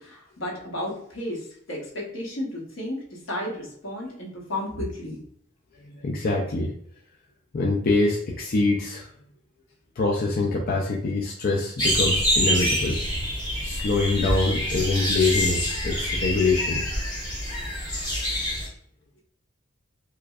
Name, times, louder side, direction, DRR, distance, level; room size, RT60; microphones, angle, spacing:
voice 1, 0.0-5.2 17.9-18.1, left 1 dB, 80° left, -2 dB, 1.2 m, -33 dB
voice 2, 5.8-6.7 7.5-9.1 10.0-13.1 13.6-16.8 17.5-17.6 18.1-18.2, left 3 dB, 45° left, -1 dB, 0.4 m, -24 dB
sound 1, 11.8-18.7, equal, 20° left, 1.1 m, -26 dB
4.6 x 2.2 x 2.3 m, 0.66 s
head